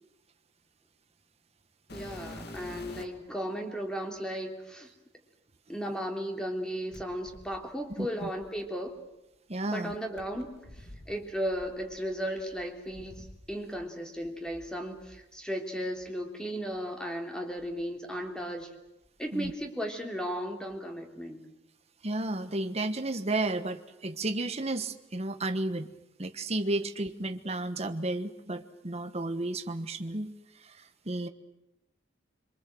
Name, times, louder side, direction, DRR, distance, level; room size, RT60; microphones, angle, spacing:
sound 1, 1.9-3.3 4.2-4.3 6.9-9.0 10.2-13.9 14.2-15.2 16.0-16.1 16.7-16.8 17.5-18.6 18.9-19.4 20.7-20.8, left 1 dB, 60° left, 2.7 m, -49 dB
voice 1, 1.9-4.9 5.7-9.0 9.6-18.7 19.2-21.4, equal, 5° left, 3 dB, 3.3 m, -35 dB
voice 2, 8.0-8.3 9.5-10.0 19.3-19.5 22.0-25.9 26.2-30.4 30.6-30.8 31.0-31.3, right 2 dB, 35° right, 7 dB, 1.3 m, -32 dB
26.0 x 24.0 x 7.8 m, 0.91 s
head